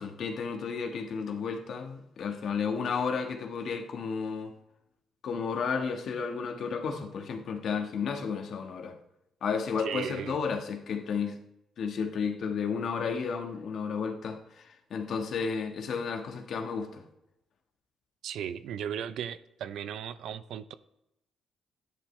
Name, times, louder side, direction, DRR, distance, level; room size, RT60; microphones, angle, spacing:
voice 1, 0.0-4.5 5.2-9.0 9.4-11.4 11.8-17.0, left 5 dB, 65° left, 4 dB, 1.3 m, -32 dB
voice 2, 9.8-10.4 18.2-20.7, right 9 dB, 75° right, 14 dB, 0.5 m, -36 dB
13.0 x 10.0 x 3.2 m, 0.86 s
cardioid pair, 90°, 0 cm